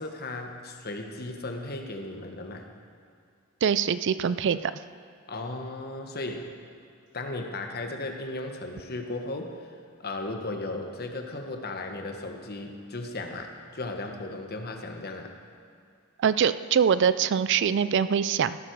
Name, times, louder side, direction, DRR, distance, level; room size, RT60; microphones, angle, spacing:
voice 1, 0.0-2.7 5.3-6.6 7.1-9.7 10.0-15.3, left 2 dB, 50° left, 4 dB, 1.3 m, -36 dB
voice 2, 3.6-4.7 16.2-18.6, right 7 dB, 60° right, 14 dB, 0.4 m, -23 dB
16.0 x 12.0 x 4.7 m, 2.4 s
head